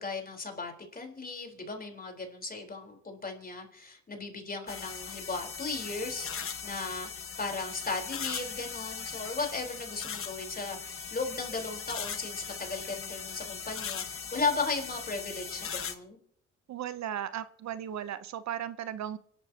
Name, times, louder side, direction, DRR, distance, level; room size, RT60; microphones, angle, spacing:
voice 1, 0.0-6.3 6.6-7.1 7.4-16.2, left 4 dB, 30° left, 2 dB, 4.0 m, -36 dB
sound 1, 4.7-15.9, left 7 dB, 45° left, 1.3 m, -39 dB
voice 2, 16.7-19.2, right 10 dB, 65° right, 13 dB, 0.8 m, -36 dB
25.5 x 11.5 x 2.8 m, 0.64 s
cardioid pair, 90°, 30 cm